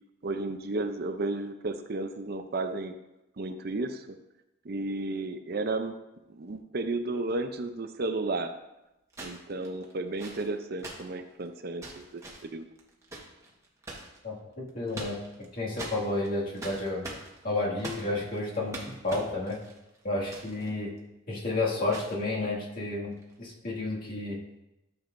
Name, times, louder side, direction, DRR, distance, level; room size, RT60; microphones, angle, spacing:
voice 1, 0.2-3.0 3.4-4.1 4.6-5.9 6.3-8.5 9.2-12.7, right 2 dB, 50° right, 7 dB, 0.5 m, -33 dB
sound 1, 7.3-7.4 9.1-14.2 14.7-15.5 15.8-20.7 21.0-21.1 21.9-22.2 23.1-23.3, right 2 dB, 15° right, 1.3 m, -43 dB
voice 2, 14.2-17.0 17.4-19.6 20.0-20.9 21.3-24.4, left 2 dB, 45° left, -4 dB, 2.1 m, -31 dB
13.0 x 7.1 x 2.6 m, 0.93 s
head